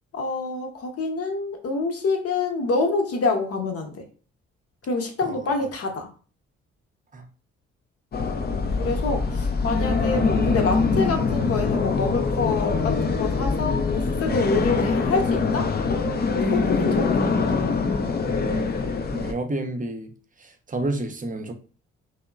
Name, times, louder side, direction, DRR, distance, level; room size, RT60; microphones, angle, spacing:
voice 1, 0.1-4.0 4.8-6.1 8.4-17.3, left 3 dB, 50° left, 0.8 m, -27 dB
sound 1, 8.1-19.3, left 4 dB, 35° left, 0.5 m, -23 dB
sound 2, 8.5-11.8 12.9-16.2, right 4 dB, 65° right, 0.6 m, -43 dB
voice 2, 18.3-18.7 19.1-20.1 20.4-21.5, right 2 dB, 25° right, 0.6 m, -30 dB
2.9 x 2.0 x 2.3 m
hypercardioid pair, 45°, 30 cm